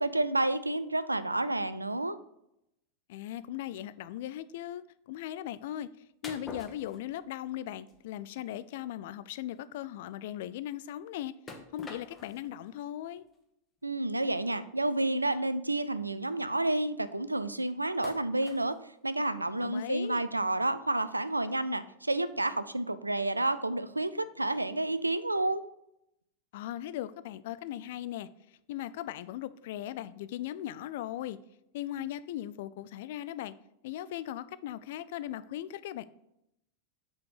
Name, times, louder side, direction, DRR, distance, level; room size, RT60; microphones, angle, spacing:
voice 1, 0.0-2.2 13.8-18.8 19.0-25.6, right 2 dB, 85° right, 0.3 m, -30 dB
voice 2, 3.1-5.9 6.2-11.3 11.7-13.2 19.6-20.2 26.5-31.4 31.7-33.5 33.8-36.1, left 12 dB, 55° left, 0.3 m, -38 dB
sound 1, 6.2-7.5 7.9-8.1 8.5-8.6 9.0-9.1 9.3-9.5 11.5-12.5 13.2-13.3 14.4-14.6 15.4-15.5 15.8-16.0 18.0-18.7, left 4 dB, 20° left, 1.0 m, -46 dB
7.6 x 3.5 x 4.7 m
figure-of-eight pair, 90°, 0 cm